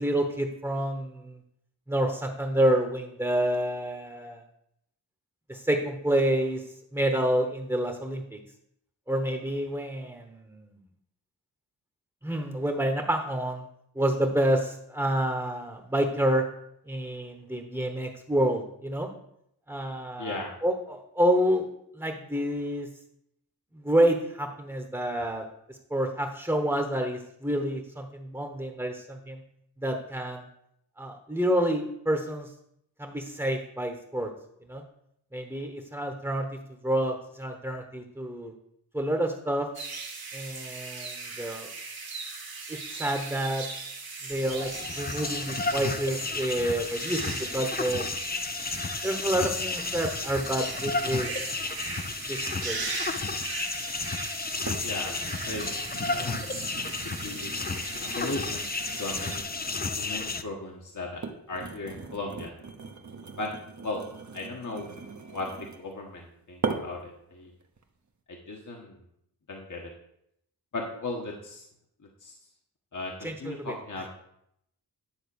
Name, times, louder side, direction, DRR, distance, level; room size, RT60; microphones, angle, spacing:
voice 1, 0.0-1.4 1.9-4.4 5.5-6.6 6.9-8.4 9.1-10.7 12.2-13.7 13.9-16.4 16.9-19.1 19.7-21.7 21.9-22.9 23.7-29.4 29.8-30.5 31.0-32.5 33.0-34.3 34.7-34.8 35.3-36.5 36.8-38.5 38.9-39.7 40.3-41.7 42.7-43.6 44.2-48.0 49.0-51.3 52.3-52.9 73.2-73.7, right 1 dB, 5° right, 3 dB, 1.2 m, -28 dB
voice 2, 20.2-20.5 54.8-55.7 56.1-56.3 57.0-57.5 58.0-58.7 59.0-59.4 60.0-61.2 61.5-62.5 63.4-63.5 63.8-64.0 64.3-64.9 65.3-65.5 65.8-67.5 68.3-69.0 69.5-69.9 70.7-71.7 72.2-72.3 72.9-74.1, left 2 dB, 50° left, 0 dB, 1.4 m, -36 dB
sound 1, 39.7-59.4, right 4 dB, 60° right, 1.4 m, -39 dB
sound 2, 44.3-60.4, left 3 dB, 25° left, 0.5 m, -33 dB
sound 3, 53.9-54.0 54.7-54.9 55.2-60.4 61.0-65.9 66.6-67.1 67.6-67.8, right 4 dB, 45° right, 1.1 m, -40 dB
10.5 x 3.7 x 7.0 m, 0.75 s
cardioid pair, 55°, 40 cm